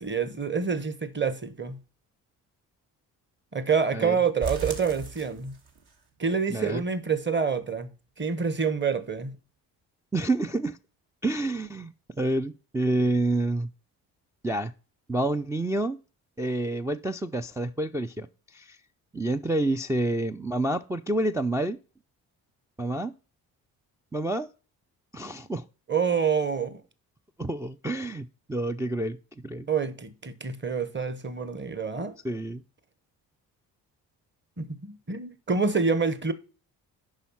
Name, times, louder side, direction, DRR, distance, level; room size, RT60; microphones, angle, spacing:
voice 1, 0.0-1.8 3.5-5.5 6.2-7.9 8.2-9.3 25.9-26.8 29.7-32.2 34.6-36.3, right 5 dB, 25° right, 1.2 m, -27 dB
sound 1, 4.4-5.9 6.2-6.3 6.8-6.9 7.3-7.4, right 4 dB, 55° right, 1.7 m, -37 dB
voice 2, 6.5-6.8 10.1-10.8 11.2-13.7 14.4-14.7 15.1-16.0 16.4-18.3 18.5-18.8 19.1-21.8 22.8-23.1 24.1-24.5 25.1-25.6 27.4-29.2 29.4-29.7 32.2-32.6, right 2 dB, 5° right, 0.4 m, -28 dB
8.2 x 5.7 x 5.7 m
hypercardioid pair, 45°, 46 cm